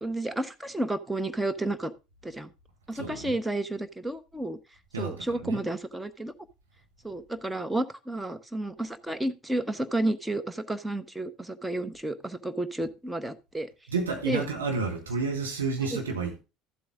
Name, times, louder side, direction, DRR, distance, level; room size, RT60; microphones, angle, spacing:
voice 1, 0.0-1.9 2.2-2.5 2.9-4.6 5.0-6.3 7.0-13.7 14.2-14.4 15.9-16.0, right 1 dB, 10° right, 1.2 m, -31 dB
voice 2, 2.9-3.4 4.9-5.6 13.9-16.4, right 4 dB, 80° right, 1.7 m, -31 dB
13.5 x 7.7 x 3.7 m
figure-of-eight pair, 60°, 0 cm